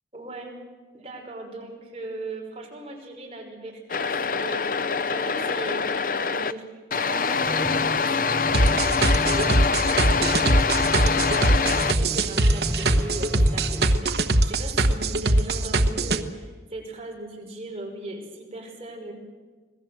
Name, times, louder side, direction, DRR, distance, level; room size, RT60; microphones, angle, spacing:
voice 1, 0.1-0.5 0.9-5.9 6.2-19.1, right 2 dB, 35° right, 0 dB, 5.4 m, -38 dB
sound 1, 3.9-6.5 6.9-11.9, left 5 dB, 50° left, 0.6 m, -24 dB
sound 2, 7.3-14.0, equal, 10° left, 2.8 m, -34 dB
sound 3, 8.5-16.2, right 2 dB, 65° right, 1.2 m, -21 dB
26.5 x 19.5 x 7.9 m, 1.4 s
head